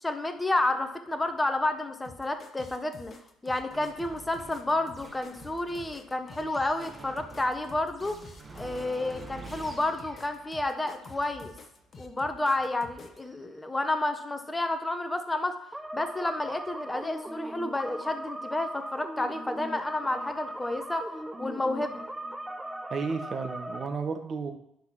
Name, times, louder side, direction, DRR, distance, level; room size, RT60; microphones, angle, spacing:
voice 1, 0.0-3.1 3.4-8.2 8.5-11.5 12.0-15.6 15.9-21.1 21.4-22.0, left 2 dB, 15° left, 8 dB, 0.8 m, -30 dB
sound 1, 2.0-13.2, left 3 dB, 40° left, 0.9 m, -49 dB
sound 2, 3.7-13.4, right 3 dB, 30° right, 1.3 m, -49 dB
sound 3, 15.7-23.9, right 1 dB, 10° right, 0.5 m, -39 dB
voice 2, 22.9-24.5, right 5 dB, 45° right, 5 dB, 1.0 m, -32 dB
10.0 x 5.8 x 3.0 m, 0.79 s
hypercardioid pair, 55°, 0 cm